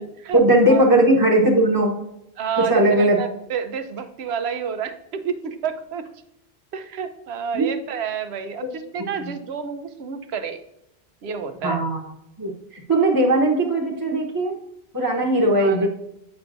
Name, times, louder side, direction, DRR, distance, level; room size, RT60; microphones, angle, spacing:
voice 1, 0.3-2.0 2.6-3.2 7.5-7.7 11.6-12.0 12.4-14.5 14.9-15.9, right 1 dB, 20° right, -2 dB, 0.9 m, -18 dB
voice 2, 2.4-6.1 6.7-10.6 11.2-11.9 15.4-15.8, right 7 dB, 75° right, 9 dB, 0.9 m, -29 dB
7.8 x 5.5 x 2.6 m, 0.81 s
omnidirectional pair, 1.1 m